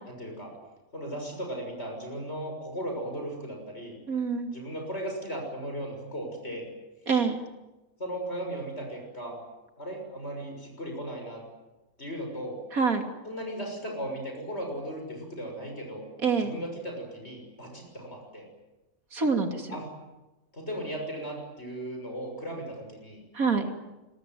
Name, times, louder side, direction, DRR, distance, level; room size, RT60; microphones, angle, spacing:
voice 1, 0.1-0.5 0.9-4.0 4.5-6.7 8.0-9.4 9.8-11.4 12.0-12.6 13.2-16.0 16.4-18.4 19.7-19.9 20.5-23.2, right 1 dB, 50° left, 2 dB, 6.8 m, -36 dB
voice 2, 4.1-4.5 7.1-7.4 12.7-13.0 16.2-16.5 19.1-19.8 23.3-23.7, right 5 dB, 75° right, 5 dB, 3.3 m, -26 dB
26.5 x 22.5 x 9.3 m, 1.1 s
omnidirectional pair, 1.5 m